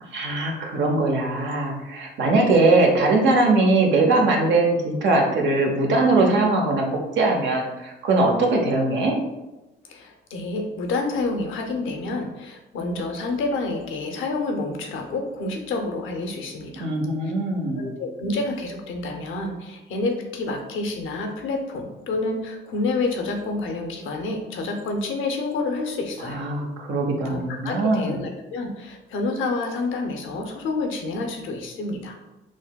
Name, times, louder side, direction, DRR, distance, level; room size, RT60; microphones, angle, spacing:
voice 1, 0.1-6.9 7.1-9.2 16.7-17.9 26.2-28.2, right 2 dB, 70° right, 1 dB, 0.8 m, -21 dB
voice 2, 9.9-16.9 17.8-26.4 27.2-32.2, left 3 dB, 80° left, 3 dB, 0.7 m, -28 dB
6.0 x 2.1 x 2.2 m, 1.0 s
cardioid pair, 90°, 20 cm